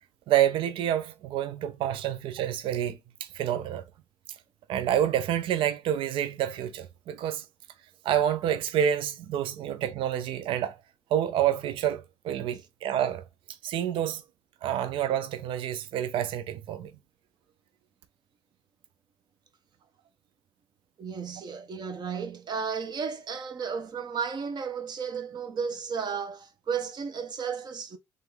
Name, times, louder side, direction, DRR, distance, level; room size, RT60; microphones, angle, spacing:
voice 1, 0.3-3.8 4.7-7.4 8.0-10.8 11.1-13.2 13.6-14.2 14.6-16.9, right 10 dB, 65° right, 0.5 m, -28 dB
voice 2, 21.0-28.0, right 6 dB, 50° right, 0.9 m, -33 dB
3.3 x 3.1 x 3.5 m
hypercardioid pair, 50°, 10 cm